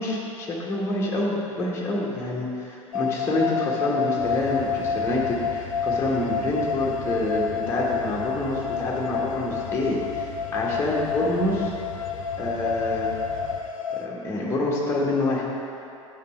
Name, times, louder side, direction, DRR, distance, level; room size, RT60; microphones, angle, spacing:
voice 1, 0.0-11.7 12.4-13.1 14.0-15.4, left 1 dB, 15° left, -5 dB, 1.3 m, -27 dB
sound 1, 2.9-14.1, left 6 dB, 75° left, 0.5 m, -29 dB
sound 2, 4.2-13.6, left 6 dB, 50° left, 1.0 m, -40 dB
10.0 x 5.8 x 4.3 m, 2.8 s
figure-of-eight pair, 80°, 18 cm